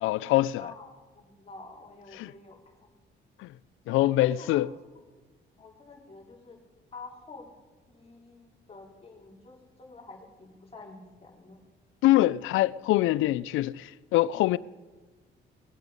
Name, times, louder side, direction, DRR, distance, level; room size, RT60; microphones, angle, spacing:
voice 1, 0.0-0.7 2.2-2.3 3.4-3.5 3.9-4.7 12.0-14.6, left 16 dB, 85° left, 0.4 m, -24 dB
voice 2, 0.6-2.9 3.9-4.6 5.6-6.6 6.9-7.5 7.9-11.6, left 3 dB, 30° left, 4.1 m, -48 dB
21.5 x 8.1 x 5.3 m
cardioid pair, 90°, 20 cm